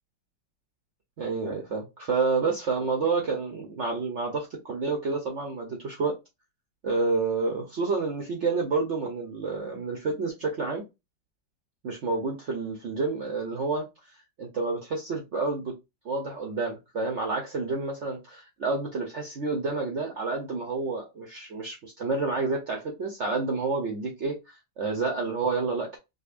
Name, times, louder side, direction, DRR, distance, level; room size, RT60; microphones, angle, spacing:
voice 1, 1.2-6.2 6.8-10.8 11.8-14.1 14.4-15.7 16.0-26.0, right 4 dB, 60° right, 0.7 m, -29 dB
5.1 x 2.2 x 2.4 m
omnidirectional pair, 1.9 m